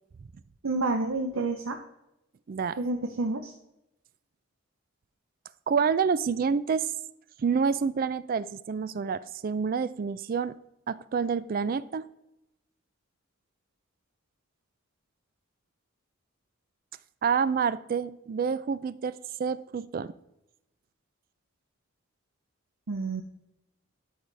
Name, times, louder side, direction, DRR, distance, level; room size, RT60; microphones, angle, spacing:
voice 1, 0.6-1.8 2.8-3.5 22.9-23.2, right 3 dB, 75° right, 5 dB, 0.7 m, -29 dB
voice 2, 2.5-2.8 5.7-6.9 7.4-10.6 10.9-12.1 17.2-20.1, right 6 dB, 45° right, 16 dB, 0.3 m, -28 dB
12.5 x 4.8 x 3.3 m, 0.88 s
head